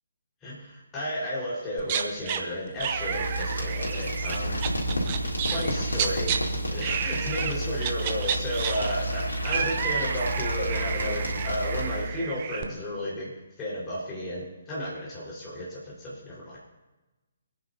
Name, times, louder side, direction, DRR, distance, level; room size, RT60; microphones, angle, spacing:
voice 1, 0.4-4.8 5.3-6.4 6.7-13.3 13.6-16.6, equal, 15° left, -8 dB, 5.0 m, -33 dB
sound 1, 1.8-2.4 2.8-6.4 6.8-7.5 7.8-12.6, right 8 dB, 30° right, 0.9 m, -31 dB
sound 2, 2.8-12.2, right 1 dB, 70° left, 3.1 m, -31 dB
27.5 x 9.8 x 2.9 m, 1.1 s
figure-of-eight pair, 135°, 0 cm